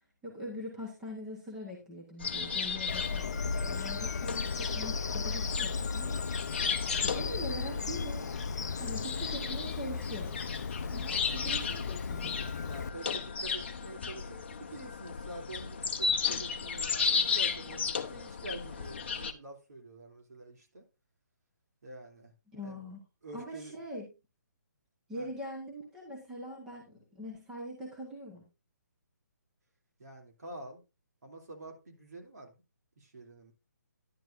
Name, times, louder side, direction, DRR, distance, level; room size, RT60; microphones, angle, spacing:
voice 1, 0.2-3.3 3.6-6.2 7.0-8.3 8.8-10.5 10.9-12.4 22.5-23.0 23.3-24.1 25.1-28.5, equal, 5° right, 1.1 m, -42 dB
sound 1, 2.2-19.3, left 5 dB, 35° left, 0.8 m, -35 dB
Bird vocalization bird call bird song, 2.9-12.9, left 5 dB, 70° left, 0.6 m, -36 dB
voice 2, 12.6-20.9 21.8-22.3 22.6-22.8 23.2-23.7 25.1-25.3 30.0-30.8 31.2-32.6 33.0-33.5, right 2 dB, 60° right, 3.1 m, -47 dB
10.5 x 9.3 x 2.6 m
hypercardioid pair, 180°, 10 cm